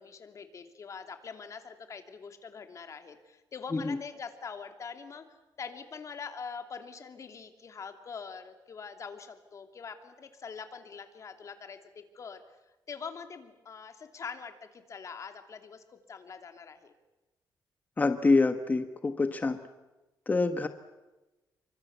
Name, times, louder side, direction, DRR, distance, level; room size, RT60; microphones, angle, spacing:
voice 1, 0.0-5.2 5.6-12.4 12.9-16.9, left 5 dB, 45° left, 7 dB, 2.9 m, -44 dB
voice 2, 18.0-19.6 20.3-20.7, left 3 dB, 20° left, 8 dB, 1.3 m, -26 dB
26.5 x 24.5 x 8.2 m, 1.1 s
cardioid pair, 135°, 7 cm